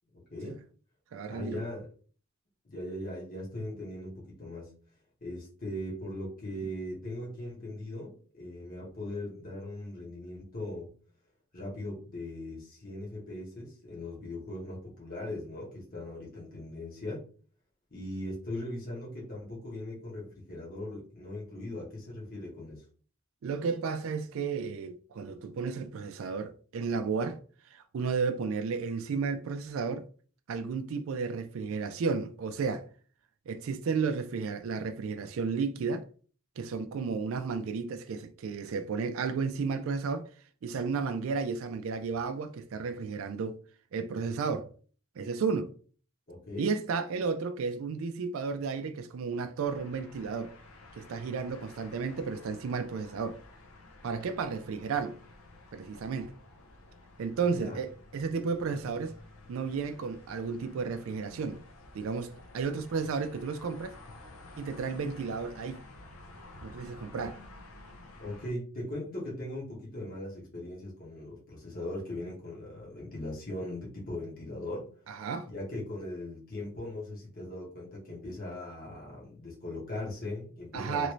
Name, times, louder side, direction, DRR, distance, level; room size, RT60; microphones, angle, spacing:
voice 1, 0.1-0.6 1.3-1.9 2.6-4.7 5.2-10.9 11.5-17.2 17.9-22.8 46.3-46.7 57.4-57.8 68.2-75.2 75.5-81.1, left 1 dB, 40° left, 1.1 m, -39 dB
voice 2, 1.1-1.7 23.4-27.4 27.7-30.0 30.5-32.9 33.5-36.1 36.6-40.3 40.6-43.6 43.9-44.7 45.2-45.7 46.6-50.5 51.0-53.4 54.0-55.2 55.7-56.3 57.2-59.2 59.5-61.6 61.9-64.0 64.6-65.8 66.6-67.4 75.1-75.5 80.7-81.1, right 5 dB, 70° right, 0.3 m, -33 dB
sound 1, 49.6-68.5, left 2 dB, 75° left, 0.6 m, -52 dB
3.0 x 2.6 x 3.0 m
head